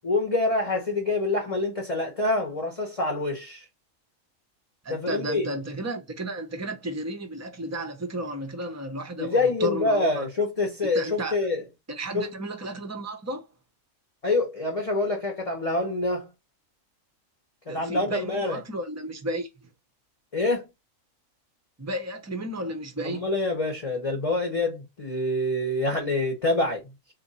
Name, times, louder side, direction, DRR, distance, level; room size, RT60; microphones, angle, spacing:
voice 1, 0.0-3.7 4.9-5.5 9.2-11.6 12.1-12.3 14.2-16.3 17.7-18.6 20.3-20.7 23.0-26.8, left 2 dB, 30° left, 0.9 m, -26 dB
voice 2, 4.8-10.3 10.9-11.4 11.9-13.5 17.7-19.5 21.8-23.3, right 1 dB, 15° right, 0.6 m, -33 dB
3.6 x 2.8 x 4.0 m
omnidirectional pair, 1.4 m